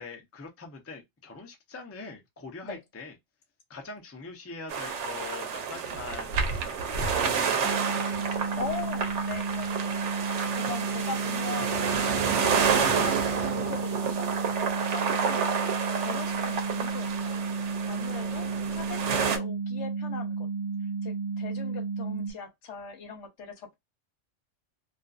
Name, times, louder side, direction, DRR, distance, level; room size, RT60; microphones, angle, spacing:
voice 1, 0.0-3.1 3.7-8.9, left 3 dB, 20° left, 0.4 m, -44 dB
sound 1, 4.7-19.4, right 6 dB, 75° right, 0.9 m, -29 dB
sound 2, 7.6-22.3, right 4 dB, 40° right, 0.5 m, -32 dB
voice 2, 8.5-10.1 10.5-13.0 13.5-15.5 16.0-17.5 17.9-20.5 21.0-23.8, left 6 dB, 75° left, 1.1 m, -40 dB
2.5 x 2.4 x 2.3 m
omnidirectional pair, 1.2 m